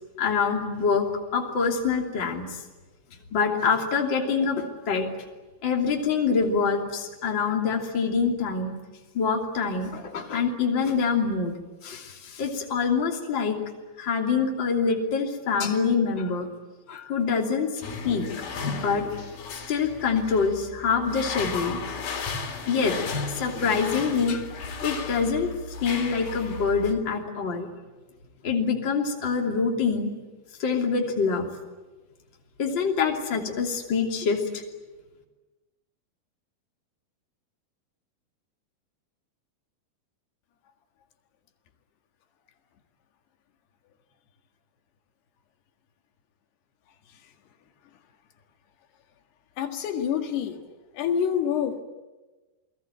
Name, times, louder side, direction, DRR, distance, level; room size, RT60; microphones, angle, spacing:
voice 1, 0.2-2.5 3.3-5.1 5.6-8.7 9.1-11.5 11.8-13.6 14.0-16.5 16.9-17.7 18.0-18.3 18.7-19.1 19.7-21.8 22.7-23.0 23.3-24.4 24.8-25.5 25.8-27.7 28.4-30.1 30.6-31.5 32.6-34.6, left 5 dB, 30° left, 1 dB, 3.2 m, -25 dB
sound 1, 17.8-26.9, left 5 dB, 70° left, 4.8 m, -34 dB
voice 2, 49.6-50.6 50.9-51.8, left 8 dB, 85° left, 5 dB, 3.9 m, -27 dB
29.0 x 20.5 x 9.2 m, 1.2 s
omnidirectional pair, 4.6 m